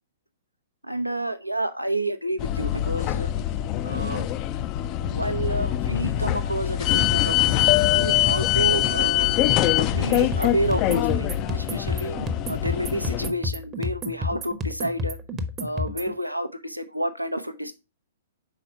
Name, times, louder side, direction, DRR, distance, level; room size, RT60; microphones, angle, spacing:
voice 1, 0.9-3.3 3.8-4.3 5.0-7.7 7.9-9.3 9.7-12.2 12.5-15.2 15.6-17.7, right 1 dB, 90° right, 10 dB, 0.6 m, -29 dB
sound 1, 2.4-13.3, left 13 dB, 30° left, 0.4 m, -23 dB
sound 2, 9.9-16.1, left 1 dB, 20° right, 0.7 m, -31 dB
5.6 x 4.1 x 4.5 m, 0.27 s
figure-of-eight pair, 110°, 0 cm